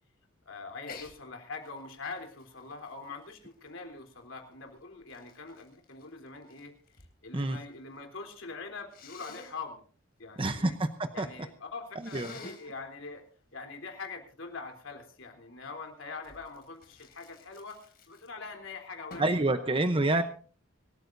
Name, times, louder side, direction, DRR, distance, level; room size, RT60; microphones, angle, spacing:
voice 1, 0.5-6.7 7.2-9.8 10.2-10.8 11.1-13.2 13.5-19.3 19.5-19.7, left 4 dB, 65° left, 5 dB, 3.6 m, -43 dB
Sneeze, 0.8-1.2 1.6-4.0 4.7-7.1 7.4-8.0 8.9-9.5 12.0-12.7 16.2-18.5 19.1-19.4, left 4 dB, 45° left, 3.7 m, -50 dB
voice 2, 10.4-11.3 12.1-12.3 19.2-20.2, right 2 dB, 25° right, 8 dB, 0.8 m, -27 dB
25.5 x 14.0 x 2.7 m, 0.43 s
head